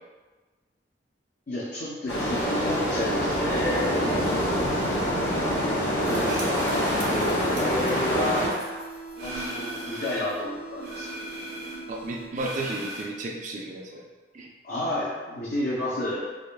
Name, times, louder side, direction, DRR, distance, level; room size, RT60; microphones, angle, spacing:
voice 1, 1.5-4.3 6.1-6.5 6.9-8.4 9.2-11.1 13.9-14.0 14.6-16.2, left 1 dB, 55° left, -7 dB, 0.6 m, -31 dB
sound 1, 2.1-8.5, equal, 80° left, 0.9 m, -25 dB
sound 2, 6.0-10.4 10.8-13.0, right 1 dB, 75° right, 0.9 m, -38 dB
sound 3, 6.7-12.7, right 3 dB, 15° left, 0.5 m, -42 dB
voice 2, 11.9-14.0 14.3-14.5, right 2 dB, 45° right, 0 dB, 0.4 m, -33 dB
4.8 x 2.5 x 2.2 m, 1.3 s
head